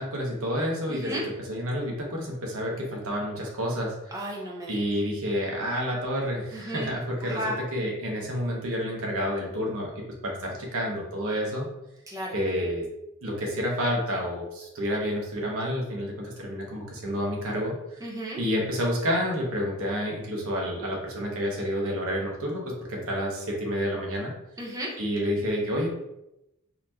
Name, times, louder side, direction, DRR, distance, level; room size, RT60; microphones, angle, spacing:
voice 1, 0.0-4.3 4.7-11.7 12.3-12.9 13.2-17.7 18.4-24.3 25.0-25.9, equal, 65° right, -1 dB, 1.0 m, -29 dB
voice 2, 0.9-1.2 4.1-4.8 6.5-6.9 7.3-7.6 12.1-12.3 18.0-18.4 24.6-24.9, right 1 dB, 15° right, -4 dB, 0.8 m, -34 dB
4.2 x 2.8 x 2.8 m, 0.89 s
head